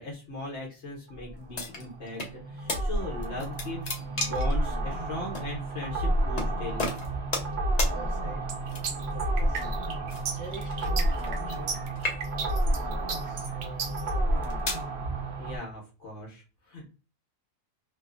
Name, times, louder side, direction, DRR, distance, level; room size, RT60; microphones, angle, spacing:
voice 1, 0.0-6.9 15.4-16.9, left 1 dB, 60° left, -3 dB, 1.2 m, -39 dB
sound 1, 1.1-15.6, right 1 dB, 60° right, 0.9 m, -30 dB
sound 2, 1.5-2.3 2.7-2.8 3.2-4.5 5.3-5.5 6.4-6.5 6.8-7.5 7.8-7.9 8.7-9.1 10.1-11.7 11.9-12.5 13.2-13.5 14.2-14.9, left 2 dB, 45° left, 0.6 m, -33 dB
voice 2, 7.8-9.8 10.3-11.7 12.3-14.5, right 1 dB, 15° left, -5 dB, 1.2 m, -45 dB
sound 3, 8.5-14.1, right 6 dB, 80° right, 1.1 m, -34 dB
2.9 x 2.0 x 2.4 m, 0.33 s
omnidirectional pair, 1.4 m